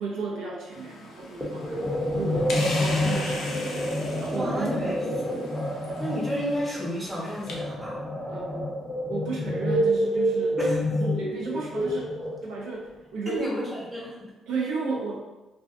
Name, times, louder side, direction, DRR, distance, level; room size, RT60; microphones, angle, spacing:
voice 1, 0.0-3.8 4.2-5.4 8.3-8.7 9.1-10.6 11.0-12.1 12.4-13.6 14.5-15.2, right 4 dB, 90° right, -3 dB, 0.5 m, -34 dB
sound 1, 0.7-7.5, left 2 dB, 75° left, 0.5 m, -39 dB
sound 2, 1.4-12.7, equal, 5° left, 0.6 m, -28 dB
voice 2, 4.3-5.1 6.0-8.0 10.6-10.8 13.3-14.3, equal, 15° right, -5 dB, 0.9 m, -31 dB
2.5 x 2.2 x 2.4 m, 1.1 s
cardioid pair, 90°, 0 cm